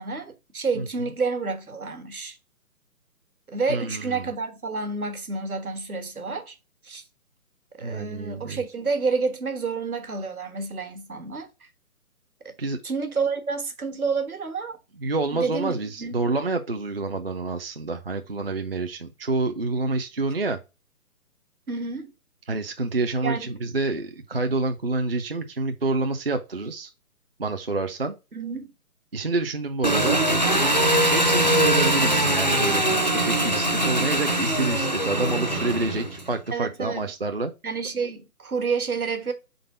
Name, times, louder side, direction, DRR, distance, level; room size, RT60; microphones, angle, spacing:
voice 1, 0.0-2.4 3.5-6.5 6.8-7.0 7.8-11.5 12.4-12.5 12.8-14.8 15.3-16.2 21.7-22.1 23.2-23.6 28.3-28.7 36.5-37.1 37.6-39.3, right 4 dB, 70° right, 1.4 m, -29 dB
voice 2, 3.7-4.3 7.8-8.6 12.6-12.8 15.0-20.6 22.5-26.9 27.4-28.2 29.1-30.2 31.1-37.5, right 3 dB, 40° right, 0.5 m, -28 dB
Engine, 29.8-36.3, right 1 dB, 30° left, 0.4 m, -22 dB
4.7 x 3.9 x 5.3 m
figure-of-eight pair, 145°, 45 cm